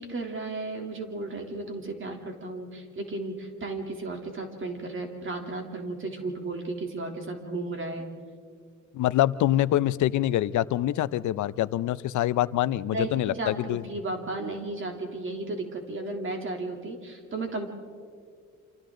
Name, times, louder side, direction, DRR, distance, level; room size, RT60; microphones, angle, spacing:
voice 1, 0.0-8.1 12.9-17.7, right 2 dB, 40° right, 2 dB, 3.2 m, -34 dB
voice 2, 8.9-13.8, left 13 dB, 75° left, 17 dB, 0.7 m, -25 dB
29.0 x 26.5 x 3.9 m, 2.1 s
cardioid pair, 90°, 30 cm